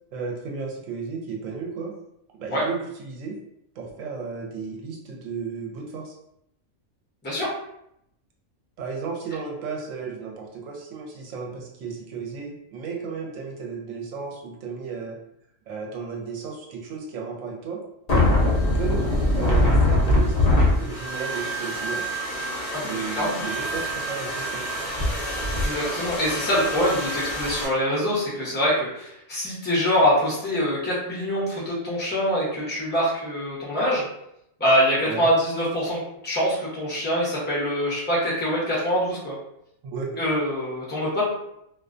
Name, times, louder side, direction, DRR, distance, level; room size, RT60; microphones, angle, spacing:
voice 1, 0.1-1.9 2.4-3.4 3.8-6.1 8.8-15.2 15.7-17.8 18.4-19.1 19.3-20.3 20.7-22.0 22.8-24.7 35.0-35.3 39.8-40.1, right 5 dB, 75° right, 0 dB, 1.0 m, -34 dB
sound 1, 18.1-27.6, left 1 dB, 55° left, 0.4 m, -24 dB
voice 2, 22.7-23.4 25.5-34.1 34.6-39.3 40.2-41.2, equal, 10° left, -6 dB, 0.6 m, -24 dB
2.4 x 2.2 x 2.5 m, 0.78 s
omnidirectional pair, 1.4 m